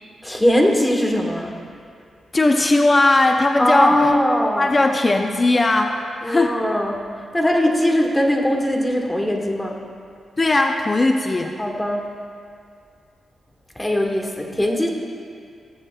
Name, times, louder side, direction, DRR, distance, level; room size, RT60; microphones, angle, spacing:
voice 1, 0.2-1.5 3.6-4.7 6.2-7.0 7.3-9.7 11.6-12.1 13.8-14.9, left 1 dB, 15° left, 1 dB, 1.5 m, -20 dB
voice 2, 2.3-4.1 4.6-6.0 6.2-6.7 10.4-11.6, left 2 dB, 35° left, 4 dB, 0.6 m, -18 dB
18.5 x 7.4 x 2.3 m, 2.3 s
supercardioid pair, 45°, 0 cm